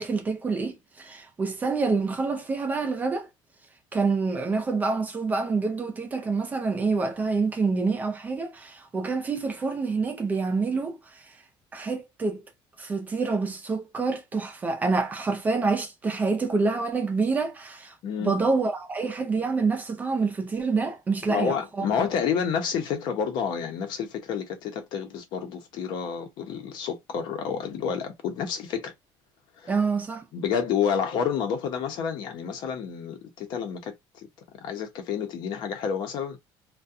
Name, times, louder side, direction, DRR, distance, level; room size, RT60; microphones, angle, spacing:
voice 1, 0.0-3.3 3.9-11.2 11.7-12.4 12.8-17.9 18.2-21.8 29.7-30.3, right 4 dB, 15° right, 0.5 m, -27 dB
voice 2, 18.0-18.3 21.3-28.9 29.6-29.8 30.3-34.3 34.5-36.4, left 7 dB, 50° left, 0.7 m, -29 dB
2.4 x 2.2 x 2.6 m
cardioid pair, 170°, 10 cm